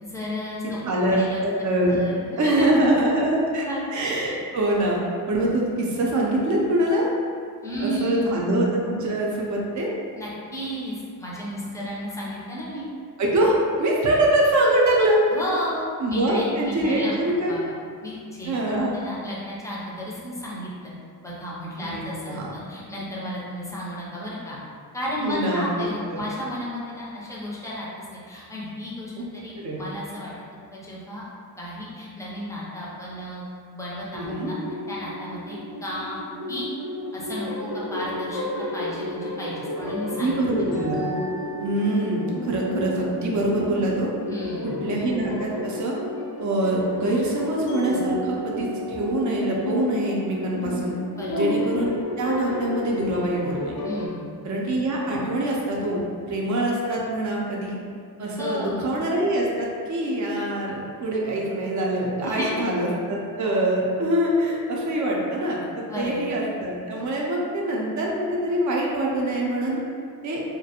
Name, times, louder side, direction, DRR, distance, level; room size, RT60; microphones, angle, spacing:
voice 1, 0.0-0.8 1.1-1.4 1.9-2.7 3.6-3.8 7.6-8.2 10.2-12.9 15.3-17.1 17.4-17.6 18.0-20.9 21.2-24.6 24.9-30.3 30.7-31.2 31.6-33.4 33.7-34.6 34.9-36.7 37.1-38.5 38.7-40.8 44.3-44.9 51.1-51.6 53.8-54.3 58.4-59.0 62.2-62.6 65.9-66.3, equal, 10° left, -6 dB, 0.4 m, -33 dB
voice 2, 0.8-2.0 2.4-3.6 3.9-5.0 5.3-7.0 7.8-9.9 13.2-15.2 16.0-17.6 18.5-19.0 21.8-22.6 25.2-26.3 29.2-29.3 29.6-29.8 34.1-34.5 40.2-41.0 41.6-44.1 44.8-45.9 46.4-50.9 51.3-53.8 54.4-56.0 56.3-57.8 58.2-65.6 66.0-69.8 70.2-70.4, right 1 dB, 50° right, -2 dB, 0.5 m, -24 dB
sound 1, 34.2-54.1, left 1 dB, 70° left, 0.6 m, -31 dB
2.3 x 2.1 x 2.8 m, 2.2 s
cardioid pair, 120°, 38 cm